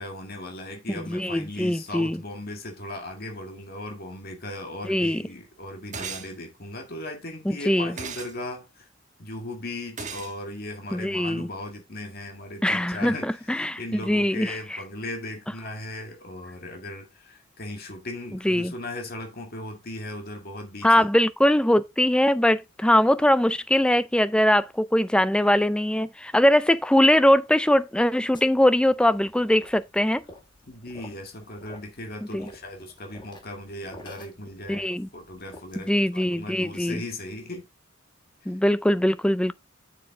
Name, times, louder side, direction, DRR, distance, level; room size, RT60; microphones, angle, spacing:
voice 1, 0.0-8.9 9.2-21.1 30.7-37.7, left 1 dB, 50° left, 2.0 m, -37 dB
voice 2, 1.0-2.2 4.8-5.2 7.7-7.9 10.9-11.5 12.6-14.8 18.4-18.7 20.8-30.2 32.3-32.5 34.7-35.1 35.8-37.0 38.5-39.5, left 1 dB, 5° left, 0.4 m, -21 dB
sound 1, 5.9-6.3 8.0-8.3 10.0-10.3, right 5 dB, 40° right, 1.2 m, -35 dB
sound 2, 28.3-36.0, left 1 dB, 25° left, 1.8 m, -50 dB
7.5 x 7.0 x 3.6 m
head